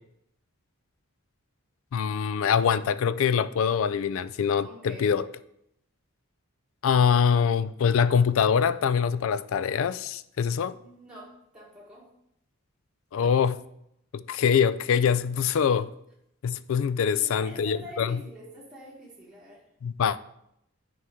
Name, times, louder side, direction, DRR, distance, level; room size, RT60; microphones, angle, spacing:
voice 1, 1.9-5.3 6.8-10.8 13.1-13.6 14.1-15.9 16.4-18.2 19.8-20.2, left 7 dB, 60° left, 0.3 m, -24 dB
voice 2, 4.6-5.1 10.8-12.1 17.2-19.6, equal, 5° right, 1.3 m, -46 dB
9.4 x 4.7 x 3.6 m
head